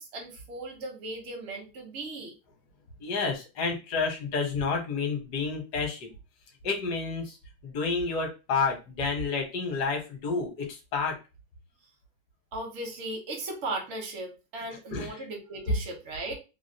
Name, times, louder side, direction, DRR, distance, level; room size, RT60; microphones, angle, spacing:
voice 1, 0.0-2.3 12.5-16.3, right 2 dB, 55° right, 1 dB, 0.8 m, -37 dB
voice 2, 3.0-6.1 6.6-7.4 7.6-11.1 14.9-15.2, left 4 dB, 55° left, 2 dB, 1.3 m, -30 dB
3.3 x 2.4 x 2.7 m, 0.29 s
omnidirectional pair, 2.3 m